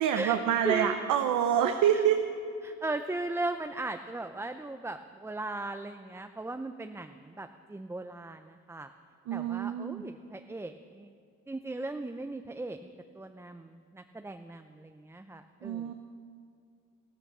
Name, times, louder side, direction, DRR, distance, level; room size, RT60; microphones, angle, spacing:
voice 1, 0.0-2.2 9.3-10.0 15.6-15.9, right 9 dB, 90° right, 6 dB, 0.8 m, -27 dB
voice 2, 0.6-1.0 1.9-2.0 2.6-8.9 9.3-11.1 11.5-15.9, right 2 dB, 10° right, 7 dB, 0.5 m, -37 dB
14.5 x 13.5 x 6.1 m, 2.4 s
cardioid pair, 90°, 30 cm